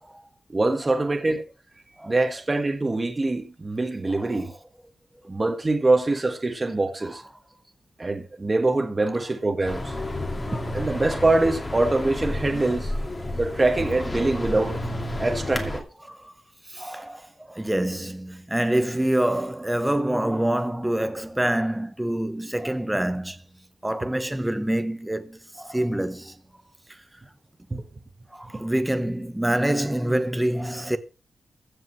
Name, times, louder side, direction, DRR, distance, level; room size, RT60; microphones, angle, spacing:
voice 1, 0.5-1.4 2.1-4.5 5.3-7.2 8.0-9.9 10.7-13.0 13.4-14.8 15.2-15.8 27.7-27.8, right 2 dB, 25° right, 1.6 m, -24 dB
voice 2, 4.1-4.5 7.1-7.2 16.0-16.3 16.7-23.4 23.8-26.3 28.3-31.0, right 1 dB, 10° right, 1.1 m, -26 dB
sound 1, 9.6-15.8, left 1 dB, 25° left, 2.4 m, -31 dB
15.5 x 5.5 x 7.5 m
wide cardioid pair, 125°, 0 cm